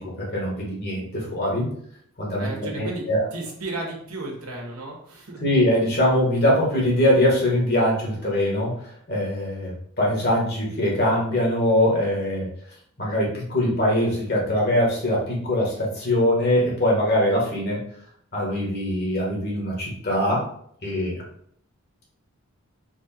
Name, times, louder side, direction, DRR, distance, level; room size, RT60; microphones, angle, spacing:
voice 1, 0.0-1.7 2.2-3.3 5.4-8.7 9.1-12.5 13.0-17.8 18.3-20.5 20.8-21.2, left 1 dB, 45° left, -3 dB, 1.7 m, -22 dB
voice 2, 2.4-3.0 3.3-5.4, right 2 dB, 90° right, -1 dB, 1.5 m, -34 dB
4.7 x 2.6 x 4.4 m, 0.66 s
head